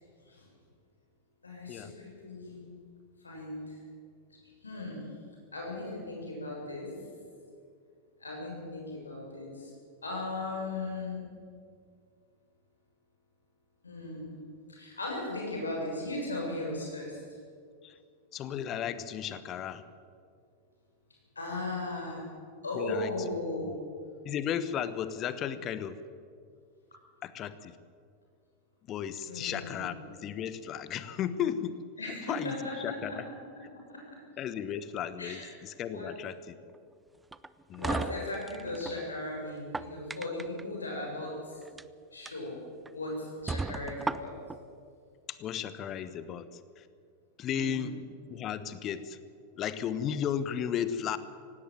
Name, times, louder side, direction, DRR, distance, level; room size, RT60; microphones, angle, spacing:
voice 1, 1.4-2.6 3.2-3.8 4.6-5.0 5.5-6.9 8.2-9.7 10.0-11.3 13.8-14.4 14.7-17.2 21.4-22.3 22.6-23.8 29.2-29.9 32.0-32.7 33.1-33.2 33.9-34.0 35.2-35.5 35.8-36.1 37.8-41.3 42.1-42.6 42.9-44.4 47.5-47.9, left 2 dB, 75° left, -2 dB, 7.2 m, -37 dB
voice 2, 18.3-19.8 22.7-23.3 23.6-23.8 24.2-26.0 27.2-27.8 28.9-31.8 32.3-33.2 34.4-36.4 37.7-38.0 45.3-46.5 46.8-46.9 47.4-47.9 48.3-49.2 49.6-51.2, left 9 dB, 30° left, 14 dB, 1.1 m, -34 dB
sound 1, 37.3-39.0 39.5-40.6 41.6-41.8 42.3-42.4 42.9-43.0 43.5-44.6, right 3 dB, 10° right, 0.6 m, -35 dB
18.0 x 16.5 x 9.3 m, 2.2 s
figure-of-eight pair, 90°, 0 cm